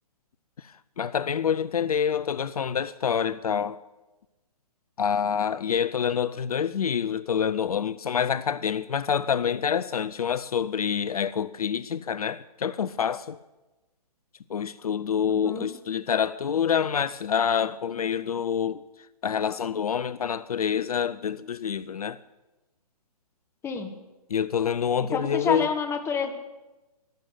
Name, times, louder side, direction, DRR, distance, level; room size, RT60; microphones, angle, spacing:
voice 1, 1.0-3.8 5.0-13.4 14.5-18.8 19.2-22.2 24.3-25.7, left 7 dB, 65° left, 0.5 m, -27 dB
voice 2, 15.3-15.7 23.6-23.9 25.1-26.3, left 6 dB, 15° left, 1.4 m, -28 dB
12.5 x 12.0 x 7.8 m
figure-of-eight pair, 125°, 20 cm